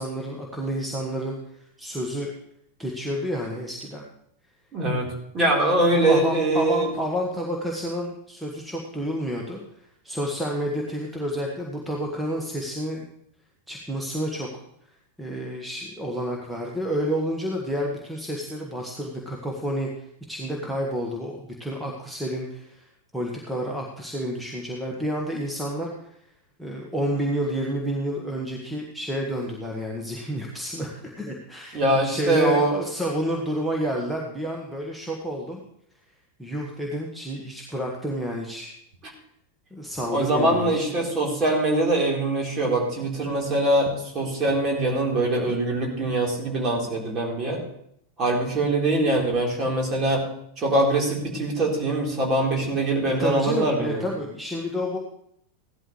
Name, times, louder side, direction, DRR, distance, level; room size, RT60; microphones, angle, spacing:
voice 1, 0.0-2.3 2.8-4.0 5.9-13.1 13.7-14.5 15.2-22.9 23.1-26.1 26.6-35.6 36.4-38.7 39.7-41.0 53.2-55.0, equal, 5° right, -1 dB, 1.5 m, -30 dB
voice 2, 4.7-5.1 5.3-6.9 31.7-32.7 40.1-47.6 48.2-50.3 50.6-54.0, right 1 dB, 30° right, -1 dB, 4.1 m, -23 dB
16.5 x 12.0 x 3.3 m, 0.73 s
figure-of-eight pair, 90°, 0 cm